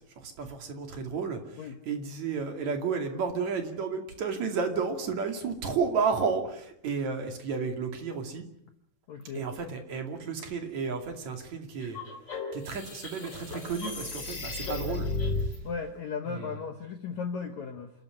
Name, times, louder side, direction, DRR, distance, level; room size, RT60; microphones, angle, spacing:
voice 1, 0.2-1.4 1.9-8.4 9.3-12.0 12.5-15.1 16.3-16.5, right 5 dB, 50° right, 4 dB, 3.5 m, -32 dB
voice 2, 9.1-9.5 15.6-17.9, left 5 dB, 60° left, 6 dB, 2.1 m, -36 dB
sound 1, 11.8-15.6, left 3 dB, 30° left, 3.8 m, -34 dB
28.0 x 13.0 x 9.7 m, 0.77 s
omnidirectional pair, 4.5 m